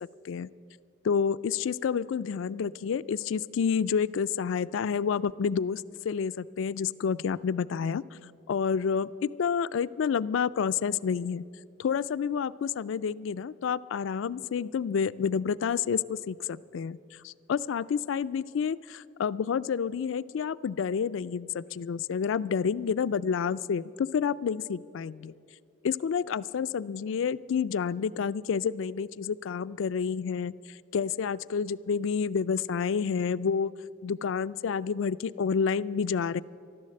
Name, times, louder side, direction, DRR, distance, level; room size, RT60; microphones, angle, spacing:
voice 1, 1.0-8.0 8.5-11.4 11.8-17.0 17.2-25.3 25.8-30.5 30.9-33.7 34.0-36.4, left 6 dB, 80° left, 17 dB, 0.4 m, -29 dB
14.0 x 12.0 x 7.7 m, 2.4 s
head